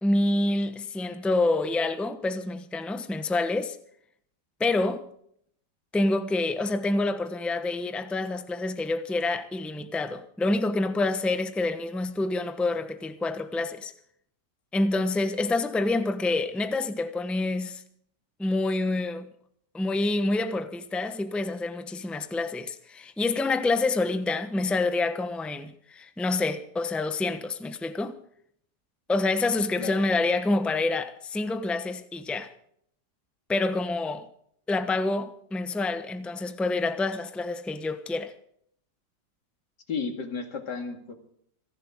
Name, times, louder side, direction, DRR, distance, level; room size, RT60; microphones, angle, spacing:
voice 1, 0.0-3.8 4.6-5.1 5.9-13.9 14.7-17.8 18.4-19.3 19.7-28.2 29.1-32.5 33.5-34.3 34.7-38.3, left 2 dB, ahead, 0.7 m, -27 dB
voice 2, 39.9-41.1, left 5 dB, 80° left, 2.7 m, -33 dB
27.0 x 11.5 x 3.7 m
omnidirectional pair, 1.8 m